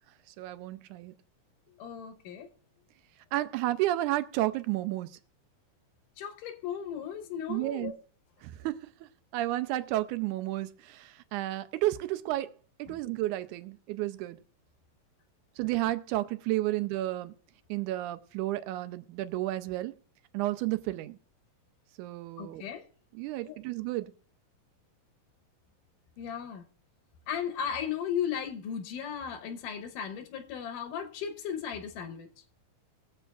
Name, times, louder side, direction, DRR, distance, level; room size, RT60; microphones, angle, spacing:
voice 1, 0.3-1.2 3.3-5.2 7.5-7.9 8.4-12.5 12.8-14.4 15.6-17.3 17.7-19.9 20.3-21.2 22.0-22.6 23.1-24.1, right 16 dB, 80° right, 1.9 m, -32 dB
voice 2, 1.8-2.5 6.2-7.9 12.9-13.0 22.4-22.8 23.4-23.6 26.2-26.6 27.3-32.3, left 8 dB, 80° left, 2.5 m, -36 dB
21.5 x 7.6 x 2.4 m
omnidirectional pair, 3.8 m